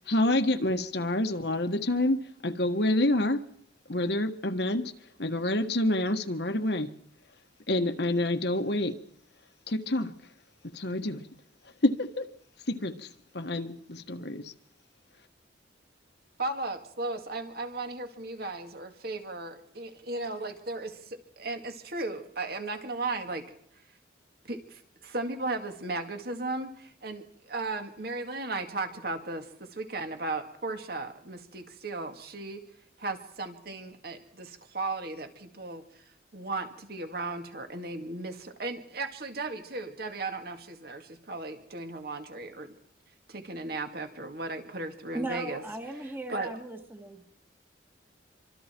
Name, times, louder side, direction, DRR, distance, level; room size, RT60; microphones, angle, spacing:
voice 1, 0.1-3.4 3.9-4.9 5.2-6.9 7.7-8.9 9.7-10.1 10.7-11.3 11.8-12.3 12.7-13.1 13.3-14.5, left 1 dB, 60° left, 1.5 m, -27 dB
voice 2, 16.4-23.4 24.4-32.6 33.0-35.8 36.3-42.7 43.3-45.6 46.3-46.5, right 2 dB, 55° right, 2.2 m, -36 dB
voice 3, 45.1-47.2, right 2 dB, 10° right, 1.8 m, -37 dB
26.0 x 25.0 x 4.5 m
head